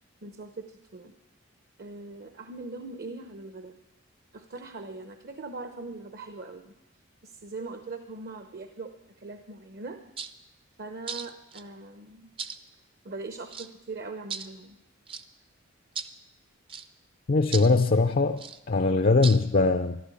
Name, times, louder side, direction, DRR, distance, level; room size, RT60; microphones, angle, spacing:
voice 1, 0.2-1.1 1.8-3.8 4.3-6.7 7.2-8.9 9.2-10.0 10.8-12.3 13.0-14.8 17.5-17.9, right 3 dB, 50° right, 0.9 m, -41 dB
sound 1, 10.2-10.3 11.1-11.6 12.4-12.6 13.5-13.7 14.3-14.5 15.1-15.2 16.0-16.1 16.7-16.9 17.5-17.7 18.4-18.6 19.2-19.4, right 6 dB, 25° right, 0.6 m, -36 dB
voice 2, 17.3-20.0, left 3 dB, 45° left, 0.5 m, -22 dB
13.5 x 11.5 x 8.3 m
head